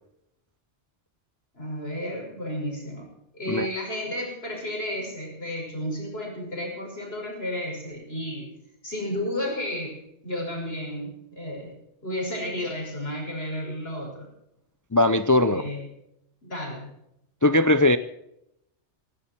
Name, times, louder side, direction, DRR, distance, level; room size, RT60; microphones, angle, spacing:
voice 1, 1.5-3.1 3.3-8.5 8.8-11.8 12.0-14.3 15.4-15.9 16.4-16.9, left 1 dB, 55° left, -1 dB, 6.2 m, -32 dB
voice 2, 14.9-15.6 17.4-18.0, left 2 dB, 25° left, 13 dB, 0.4 m, -19 dB
18.0 x 17.5 x 4.5 m, 0.80 s
omnidirectional pair, 1.2 m